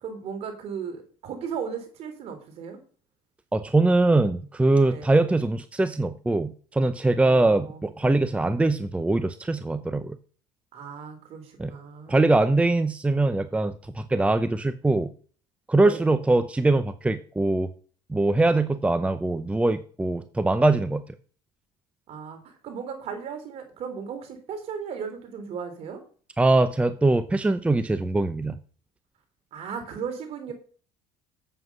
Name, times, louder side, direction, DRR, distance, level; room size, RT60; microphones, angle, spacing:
voice 1, 0.0-2.8 4.9-5.2 7.2-8.2 10.7-12.3 15.8-16.2 22.1-26.0 29.5-30.5, right 6 dB, 55° right, 6 dB, 3.4 m, -36 dB
voice 2, 3.5-10.2 11.6-11.7 12.1-15.1 15.7-17.7 18.1-21.0 26.4-28.5, right 2 dB, 10° right, 11 dB, 0.7 m, -22 dB
7.9 x 7.6 x 5.5 m, 0.41 s
supercardioid pair, 95°, 12 cm